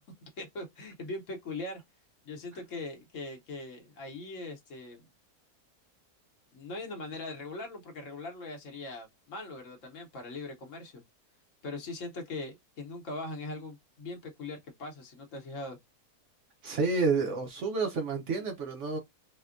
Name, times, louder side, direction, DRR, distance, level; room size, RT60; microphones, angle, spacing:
voice 1, 0.4-1.8 2.2-5.1 6.5-11.0 11.6-15.8, left 2 dB, 60° left, 1.2 m, -41 dB
voice 2, 16.6-19.0, right 4 dB, 60° right, 0.9 m, -29 dB
4.2 x 2.2 x 2.4 m
omnidirectional pair, 1.6 m